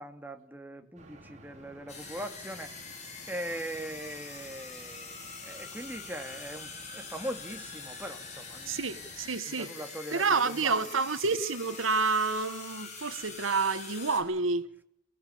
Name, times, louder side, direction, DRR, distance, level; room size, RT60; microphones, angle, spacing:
voice 1, 0.0-2.8 3.3-8.8 9.5-10.8, right 1 dB, 10° right, 2.3 m, -41 dB
sound 1, 0.9-9.3, right 1 dB, 35° right, 5.3 m, -54 dB
sound 2, 1.9-14.2, left 5 dB, 35° left, 7.8 m, -44 dB
voice 2, 8.7-9.7 10.1-14.7, right 4 dB, 90° right, 1.5 m, -29 dB
28.5 x 17.0 x 8.7 m
head